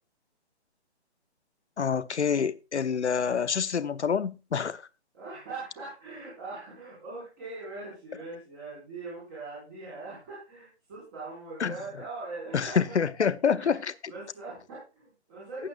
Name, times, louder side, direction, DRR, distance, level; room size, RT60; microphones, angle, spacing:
voice 1, 1.8-4.8 11.6-11.7 12.5-13.9 15.6-15.7, left 6 dB, 90° left, 1.0 m, -27 dB
voice 2, 5.1-13.0 13.6-13.8 14.1-15.7, right 3 dB, 15° right, 5.4 m, -41 dB
16.5 x 8.6 x 2.5 m
hypercardioid pair, 175°, 33 cm